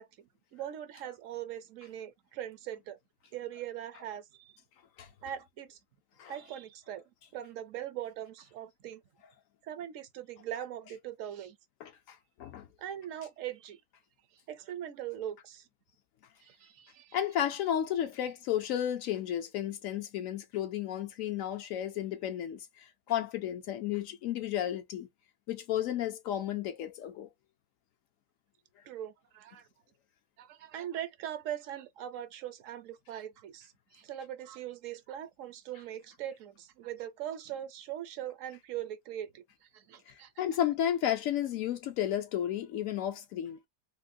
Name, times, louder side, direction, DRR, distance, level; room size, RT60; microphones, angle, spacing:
voice 1, 0.0-3.0 3.3-4.6 5.2-5.8 6.3-7.0 7.3-9.0 9.6-11.6 12.8-13.8 14.5-15.7 16.4-17.2 28.8-29.7 30.4-40.3, right 11 dB, 70° right, 0.9 m, -41 dB
voice 2, 11.8-12.7 17.1-25.1 25.5-27.3 40.1-43.6, left 11 dB, 70° left, 0.9 m, -33 dB
3.7 x 2.1 x 2.6 m
omnidirectional pair, 1.5 m